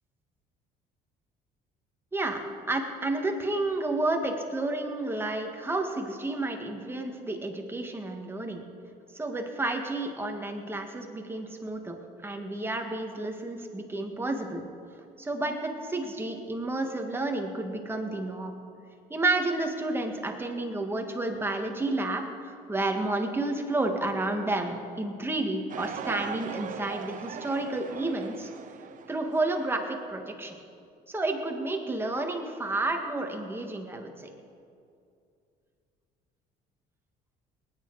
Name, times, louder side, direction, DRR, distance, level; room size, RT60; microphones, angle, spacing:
voice 1, 2.1-8.6 9.1-12.0 12.2-14.6 15.2-18.6 19.1-28.5 29.1-30.6 31.1-34.3, right 2 dB, 15° right, 3 dB, 1.7 m, -31 dB
sound 1, 25.7-29.7, right 7 dB, 50° right, 0.8 m, -39 dB
19.5 x 9.9 x 4.8 m, 2.4 s
cardioid pair, 110°, 17 cm